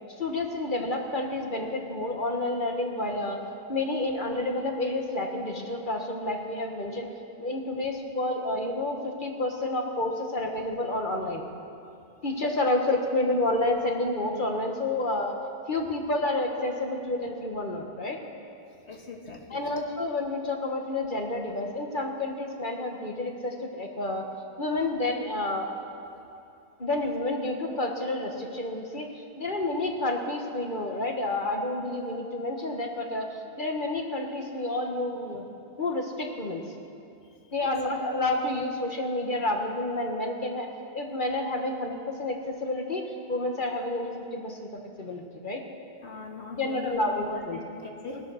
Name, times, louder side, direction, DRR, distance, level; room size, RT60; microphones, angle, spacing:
voice 1, 0.2-3.4 3.7-7.1 7.4-11.4 12.2-15.4 15.7-18.2 19.5-24.3 24.6-25.7 26.8-33.3 33.6-35.5 35.8-36.6 37.5-40.7 40.9-44.7 45.0-45.6 46.6-47.6 48.1-48.2, left 2 dB, 50° left, 2 dB, 1.5 m, -29 dB
voice 2, 18.9-19.6 37.2-37.3 37.6-37.7 46.0-47.0 47.3-48.2, left 4 dB, 85° left, 0 dB, 2.0 m, -40 dB
18.5 x 12.0 x 6.2 m, 2.7 s
omnidirectional pair, 1.1 m